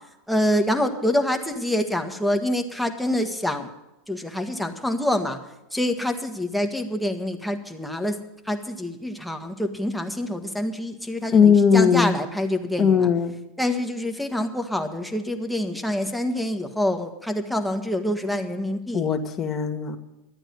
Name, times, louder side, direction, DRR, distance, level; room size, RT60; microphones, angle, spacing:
voice 1, 0.3-3.7 4.1-5.4 5.7-8.2 8.4-13.1 13.6-19.1, left 1 dB, ahead, 4 dB, 1.4 m, -26 dB
voice 2, 11.3-12.1 12.8-13.3 18.9-20.0, left 6 dB, 30° left, 5 dB, 1.5 m, -18 dB
12.5 x 8.9 x 7.7 m, 0.97 s
hypercardioid pair, 105°, 0 cm